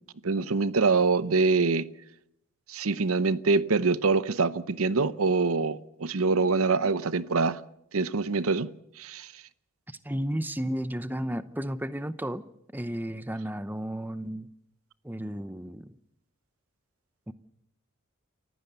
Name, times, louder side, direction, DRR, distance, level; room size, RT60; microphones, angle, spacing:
voice 1, 0.2-1.9 2.7-7.6 7.9-8.7 9.0-9.3, right 4 dB, 80° right, 0.8 m, -25 dB
voice 2, 9.9-12.4 12.7-14.5 15.0-15.9 17.3-17.4, equal, 10° right, 0.8 m, -33 dB
29.0 x 15.5 x 6.9 m
head